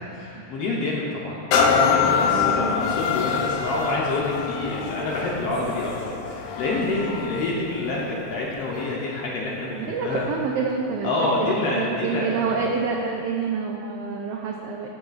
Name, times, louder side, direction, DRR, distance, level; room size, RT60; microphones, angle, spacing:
voice 1, 0.1-10.3 11.0-12.5, left 2 dB, 70° left, -4 dB, 1.5 m, -27 dB
sound 1, 1.5-9.1 9.7-9.8, left 6 dB, 90° left, 2.1 m, -25 dB
voice 2, 2.2-3.0 9.8-11.1 11.4-14.9, right 5 dB, 85° right, 0 dB, 1.4 m, -28 dB
13.5 x 6.5 x 2.4 m, 2.6 s
omnidirectional pair, 3.4 m